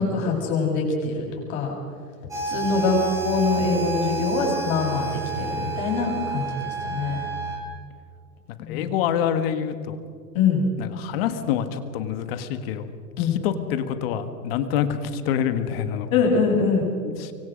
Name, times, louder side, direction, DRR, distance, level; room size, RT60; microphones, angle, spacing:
voice 1, 0.0-1.7 2.5-7.2 8.6-8.9 10.3-10.6 13.2-13.4 16.1-16.9, left 4 dB, 55° left, 0 dB, 7.4 m, -24 dB
sound 1, 2.3-7.6, right 5 dB, 5° right, 3.1 m, -30 dB
voice 2, 8.7-10.0 10.8-12.9 13.2-16.1 17.0-17.3, left 9 dB, 35° left, 10 dB, 1.5 m, -26 dB
24.5 x 24.0 x 5.2 m, 2.2 s
supercardioid pair, 165°, 48 cm